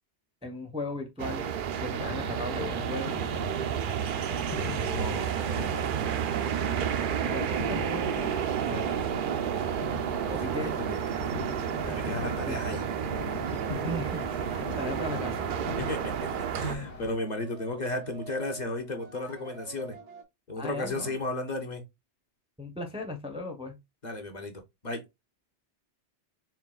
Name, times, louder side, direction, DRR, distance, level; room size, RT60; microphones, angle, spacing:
voice 1, 0.4-1.5 1.8-3.2 7.2-8.3 8.6-9.0 10.3-10.7 12.5-12.6 13.9-15.5 20.6-21.1 22.6-23.8, left 2 dB, 5° right, 0.6 m, -37 dB
sound 1, 1.2-16.7, right 8 dB, 60° right, 0.6 m, -31 dB
sound 2, 2.0-17.2, left 7 dB, 60° left, 0.3 m, -42 dB
voice 2, 4.8-5.8 9.8-11.0 11.8-12.8 13.5-13.7 15.8-20.0 20.5-21.8 24.0-25.0, left 2 dB, 40° left, 1.0 m, -35 dB
sound 3, 13.3-20.2, right 5 dB, 85° right, 1.3 m, -48 dB
4.5 x 3.4 x 2.3 m
omnidirectional pair, 1.2 m